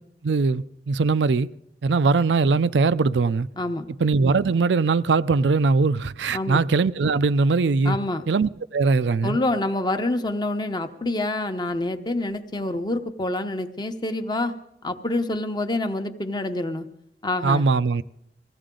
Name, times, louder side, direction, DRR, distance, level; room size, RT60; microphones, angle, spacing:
voice 1, 0.2-1.5 1.8-3.5 4.0-8.0 8.3-9.4 17.4-18.0, right 4 dB, 85° right, 0.5 m, -21 dB
voice 2, 6.3-6.6 7.8-8.2 9.2-14.5 14.8-16.9 17.2-17.6, left 2 dB, 25° left, 0.9 m, -27 dB
20.5 x 15.5 x 3.8 m
head